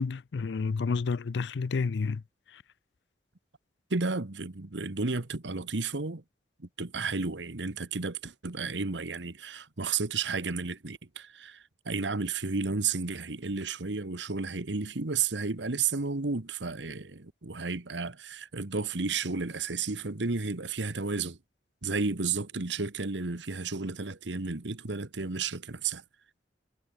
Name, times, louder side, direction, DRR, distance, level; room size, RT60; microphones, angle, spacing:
voice 1, 0.0-2.2 2.5-2.6, left 4 dB, 75° left, 0.4 m, -30 dB
voice 2, 3.9-6.2 6.6-21.4 21.8-26.0, right 4 dB, 80° right, 1.4 m, -32 dB
head